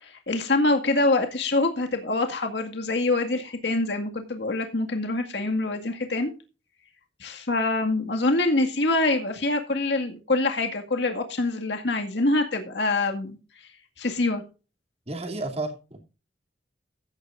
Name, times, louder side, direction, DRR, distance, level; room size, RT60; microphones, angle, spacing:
voice 1, 0.0-6.3 7.2-13.4 14.0-14.4, left 2 dB, 75° left, 4 dB, 2.0 m, -25 dB
voice 2, 15.1-16.0, right 2 dB, 35° right, 4 dB, 2.8 m, -32 dB
15.0 x 10.5 x 2.6 m, 0.32 s
head